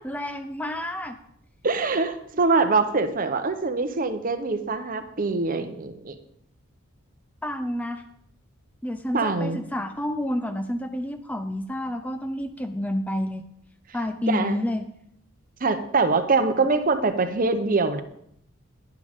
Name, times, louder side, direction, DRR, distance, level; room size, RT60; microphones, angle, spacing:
voice 1, 0.0-1.2 7.4-8.0 8.8-13.4 13.9-14.8, left 1 dB, 5° left, 8 dB, 0.4 m, -29 dB
voice 2, 1.6-6.1 9.1-9.6 14.3-14.6 15.6-18.0, right 3 dB, 40° right, 9 dB, 0.8 m, -23 dB
11.5 x 10.0 x 3.6 m, 0.72 s
head